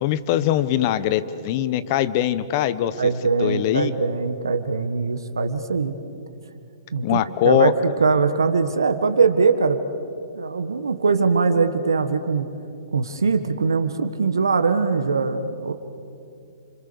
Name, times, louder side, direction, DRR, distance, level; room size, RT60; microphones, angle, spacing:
voice 1, 0.0-3.1 3.4-3.9 7.0-7.7, left 12 dB, 45° left, 14 dB, 1.2 m, -22 dB
voice 2, 3.0-5.9 6.9-9.8 10.3-12.4 12.9-15.7, right 4 dB, 80° right, 8 dB, 1.5 m, -21 dB
28.5 x 26.0 x 7.0 m, 2.6 s
hypercardioid pair, 125°, 2 cm